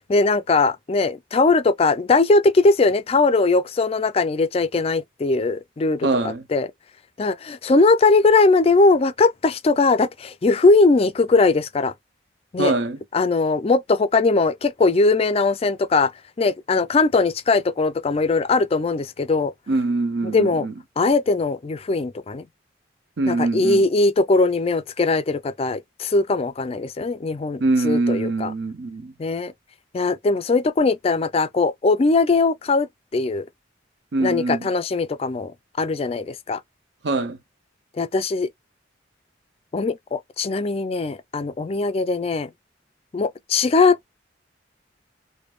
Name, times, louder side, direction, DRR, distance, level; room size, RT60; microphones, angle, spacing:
voice 1, 0.1-6.7 7.2-11.9 12.5-12.7 13.1-16.1 16.4-19.5 20.2-20.7 21.0-22.4 23.3-28.5 29.2-29.5 29.9-33.4 34.2-35.5 35.8-36.6 38.0-38.5 39.7-42.5 43.1-44.2, left 3 dB, 30° left, 0.4 m, -20 dB
voice 2, 6.0-6.4 12.6-13.0 19.7-20.7 23.2-23.8 27.6-29.1 34.1-34.7 37.0-37.4, right 2 dB, 65° right, 0.7 m, -23 dB
5.1 x 2.1 x 2.4 m
head